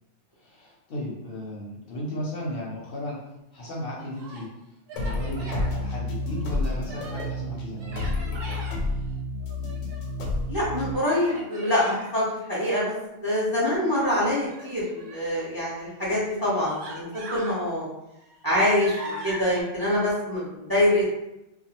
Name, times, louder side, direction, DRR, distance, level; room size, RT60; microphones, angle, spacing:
voice 1, 0.4-3.2 3.5-4.5 4.9-8.7, left 1 dB, 60° left, -4 dB, 0.7 m, -35 dB
Human voice, 3.9-4.5 4.9-5.7 6.2-7.4 7.8-8.8 9.4-10.2 11.1-12.1 14.4-15.3 16.0-16.1 16.5-17.6 18.1-19.6, right 1 dB, 60° right, 0.8 m, -41 dB
sound 1, 5.0-10.9, left 2 dB, 85° left, 1.0 m, -30 dB
voice 2, 10.5-17.9 18.4-21.3, left 1 dB, 25° right, -7 dB, 0.5 m, -25 dB
2.3 x 2.3 x 2.9 m, 0.91 s
omnidirectional pair, 1.3 m